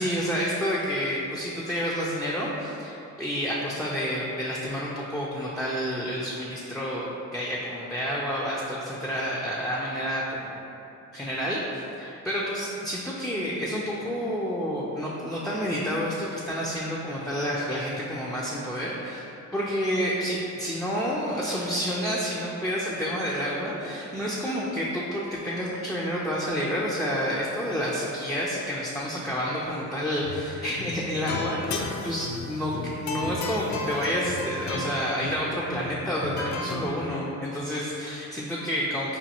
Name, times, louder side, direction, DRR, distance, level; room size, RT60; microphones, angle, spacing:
voice 1, 0.0-10.6 11.1-32.7 33.0-39.2, equal, ahead, -6 dB, 0.4 m, -29 dB
sound 1, 30.1-30.5 30.7-36.9, left 3 dB, 65° left, 0.5 m, -34 dB
5.2 x 2.3 x 2.8 m, 2.8 s
cardioid pair, 90°, 30 cm